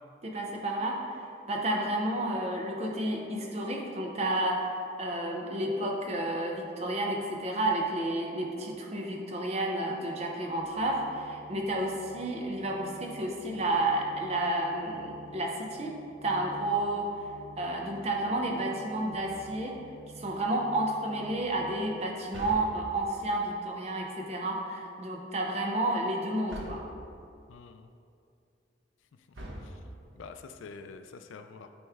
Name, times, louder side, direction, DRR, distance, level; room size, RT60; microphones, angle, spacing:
voice 1, 0.2-15.9 16.2-17.1 17.6-19.7 20.2-26.8, right 1 dB, 35° right, 0 dB, 0.7 m, -31 dB
sound 1, 10.6-21.8, right 1 dB, 55° left, 0.7 m, -51 dB
sound 2, 19.1-19.8 22.3-23.2 26.5-27.1 29.3-30.2, right 1 dB, 80° right, 0.9 m, -43 dB
voice 2, 27.5-27.9 29.6-29.8 30.2-31.7, left 4 dB, 85° left, 8 dB, 0.4 m, -46 dB
8.9 x 3.1 x 3.5 m, 2.4 s
head